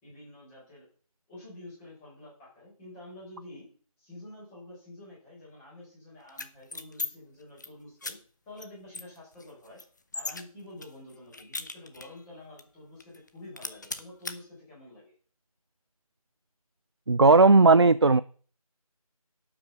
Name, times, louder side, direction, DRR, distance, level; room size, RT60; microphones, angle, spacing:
voice 1, 0.0-0.9 1.3-3.7 4.0-8.2 8.4-9.8 10.1-15.1, left 1 dB, 10° left, -7 dB, 4.7 m, -48 dB
sound 1, 6.3-7.1 7.4-7.7 8.0-8.1 8.6-8.7 8.9-10.4 10.8-12.2 12.6-12.7 13.0-13.3 13.6-14.4, left 3 dB, 30° left, 0.9 m, -37 dB
voice 2, 17.1-18.2, right 3 dB, 45° right, 14 dB, 0.4 m, -17 dB
12.0 x 6.1 x 5.7 m, 0.42 s
figure-of-eight pair, 165°, 19 cm